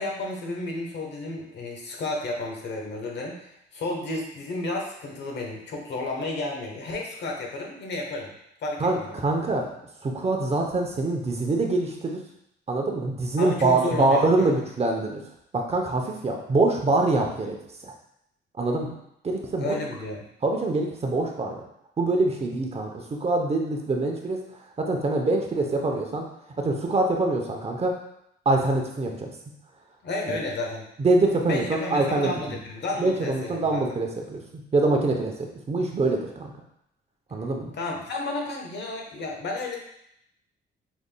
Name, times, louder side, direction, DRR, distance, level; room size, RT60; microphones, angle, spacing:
voice 1, 0.0-8.3 8.6-9.1 13.4-14.5 19.6-20.3 30.0-30.9 31.4-33.8 37.8-39.8, left 2 dB, 60° left, 0 dB, 1.0 m, -32 dB
voice 2, 8.8-9.7 10.0-12.2 12.7-15.2 15.5-17.6 17.8-17.9 18.6-18.9 19.2-19.8 20.4-21.6 22.0-24.4 24.8-26.2 26.6-27.9 28.5-29.3 30.3-30.4 31.0-32.3 33.0-34.4 34.7-35.3 35.7-36.5 37.3-37.7, right 2 dB, 30° right, 2 dB, 0.7 m, -24 dB
5.1 x 3.5 x 2.2 m, 0.76 s
cardioid pair, 90°, 20 cm